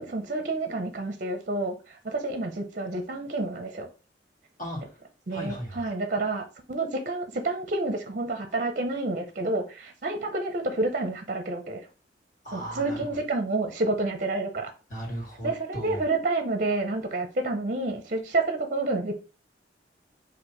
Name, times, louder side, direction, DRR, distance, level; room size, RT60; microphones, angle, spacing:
voice 1, 0.0-3.9 5.3-11.8 12.5-14.7 15.4-19.1, right 2 dB, 45° right, 0.6 m, -29 dB
voice 2, 4.6-5.0 5.3-5.8 12.4-13.2 14.9-16.0, equal, 45° left, 1.7 m, -36 dB
4.4 x 2.5 x 4.4 m
head